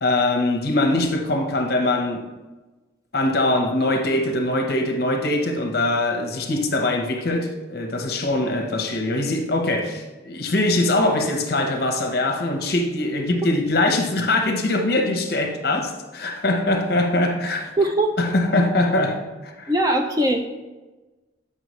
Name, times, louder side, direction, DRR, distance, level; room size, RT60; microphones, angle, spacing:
voice 1, 0.0-2.3 3.1-17.7 18.2-19.7, left 2 dB, 50° left, 0.8 m, -22 dB
voice 2, 17.8-18.1 19.7-20.6, right 1 dB, 20° right, 0.4 m, -21 dB
7.7 x 5.5 x 3.1 m
head